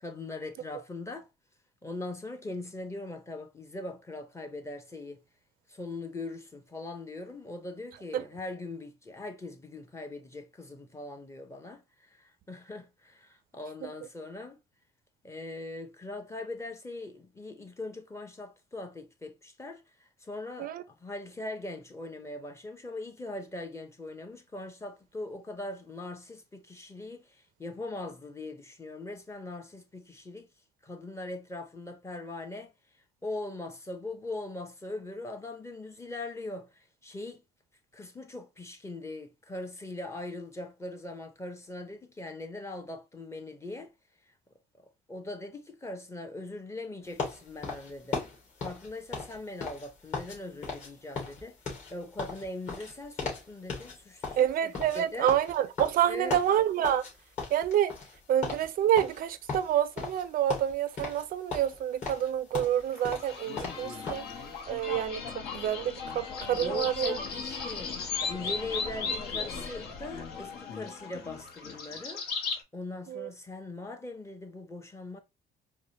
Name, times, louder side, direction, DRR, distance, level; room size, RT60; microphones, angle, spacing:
voice 1, 0.0-1.3 1.8-5.2 5.7-14.6 15.2-30.5 30.8-32.7 33.2-37.4 37.9-43.9 45.1-48.2 48.6-51.6 51.9-55.3 56.0-56.4 66.5-68.0 68.3-72.2 72.7-75.2, left 2 dB, 15° left, 0.7 m, -41 dB
sound 1, 47.2-50.4 50.6-50.9 51.1-53.4 53.7-53.9 54.2-57.1 57.4-58.2 58.4-58.7 59.0-60.2 60.5-61.2 61.5-64.3, left 4 dB, 45° left, 2.5 m, -37 dB
voice 2, 54.4-57.0 57.5-57.9 58.3-64.2 64.7-65.2 65.5-67.2 73.1-73.3, right 10 dB, 60° right, 0.4 m, -28 dB
sound 2, 62.9-72.6, left 5 dB, 75° left, 1.0 m, -36 dB
4.7 x 2.1 x 2.8 m
cardioid pair, 110°, 17 cm